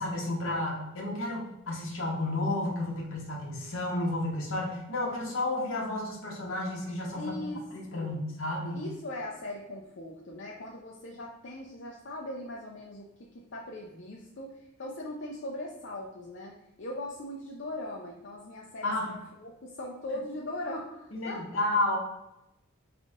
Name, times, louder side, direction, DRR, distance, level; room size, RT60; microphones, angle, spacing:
voice 1, 0.0-7.4 7.7-8.8 18.8-19.1 21.1-22.0, left 2 dB, 70° left, -2 dB, 1.3 m, -31 dB
voice 2, 7.1-7.7 7.9-8.2 8.7-21.6, left 1 dB, 55° left, -2 dB, 0.5 m, -40 dB
3.7 x 3.6 x 3.6 m, 0.88 s
head